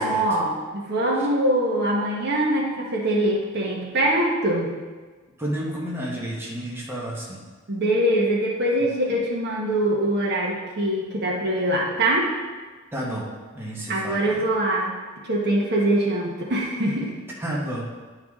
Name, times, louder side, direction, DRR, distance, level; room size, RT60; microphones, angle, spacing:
voice 1, 0.0-4.7 7.7-12.3 13.9-14.9 15.2-17.1, right 1 dB, 55° right, -2 dB, 1.3 m, -23 dB
voice 2, 5.4-7.4 12.9-14.4 17.4-17.8, right 1 dB, 10° right, -5 dB, 1.2 m, -31 dB
10.5 x 4.8 x 3.6 m, 1.4 s
head